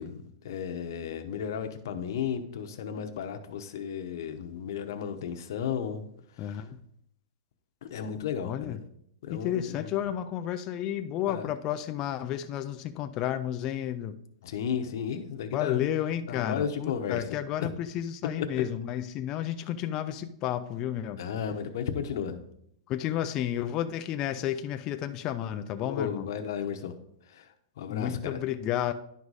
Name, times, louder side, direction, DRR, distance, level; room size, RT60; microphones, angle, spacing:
voice 1, 0.0-6.0 7.8-8.8 9.2-9.9 11.3-11.5 14.4-15.8 16.3-17.2 18.4-18.5 21.2-22.4 25.8-26.9 27.3-27.4 27.8-28.4, left 7 dB, 50° left, 0.8 m, -34 dB
voice 2, 6.4-6.8 8.4-8.8 9.3-14.1 15.5-21.2 22.9-26.3 27.9-28.9, left 11 dB, 20° left, 0.3 m, -32 dB
11.0 x 4.7 x 4.0 m
supercardioid pair, 175°, 3 cm